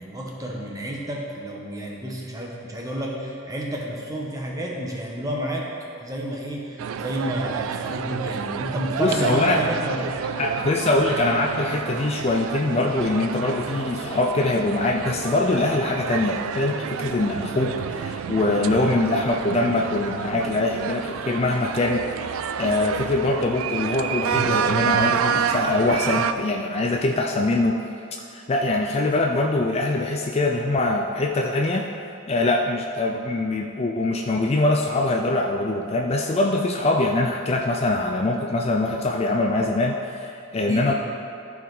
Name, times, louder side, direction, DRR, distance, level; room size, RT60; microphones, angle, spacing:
voice 1, 0.0-5.6 6.0-10.1 40.7-40.9, right 1 dB, 15° right, -2 dB, 1.1 m, -30 dB
sound 1, 6.8-26.3, right 7 dB, 75° right, 0.3 m, -29 dB
voice 2, 9.0-9.6 10.4-22.0 22.3-27.8 28.3-31.9 32.3-40.9, left 2 dB, 30° left, 1 dB, 0.4 m, -23 dB
13.5 x 4.7 x 4.0 m, 2.6 s
head